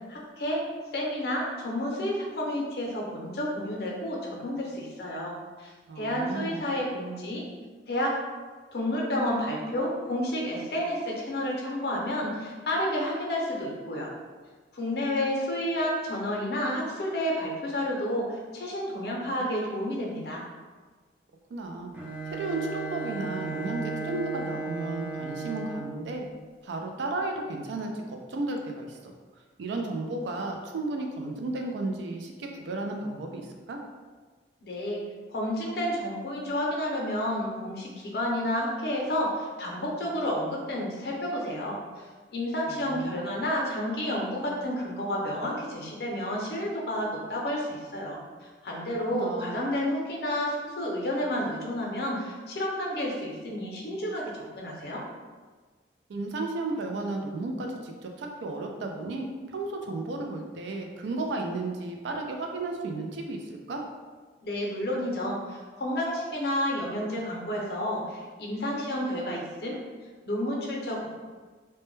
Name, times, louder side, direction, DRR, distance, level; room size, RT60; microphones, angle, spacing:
voice 1, 0.1-0.6 0.9-7.4 7.9-8.2 8.7-14.1 14.7-20.4 34.6-35.0 35.3-42.0 42.3-55.0 64.4-69.8 70.3-71.1, left 1 dB, 65° left, -2 dB, 0.5 m, -30 dB
voice 2, 5.9-6.6 21.5-21.9 22.3-26.2 26.6-29.1 29.6-33.8 42.7-43.2 48.8-49.6 56.1-63.8, right 2 dB, 85° right, 2 dB, 0.4 m, -33 dB
Bowed string instrument, 21.9-26.1, right 3 dB, 10° right, 0.3 m, -35 dB
2.1 x 2.1 x 3.0 m, 1.4 s
head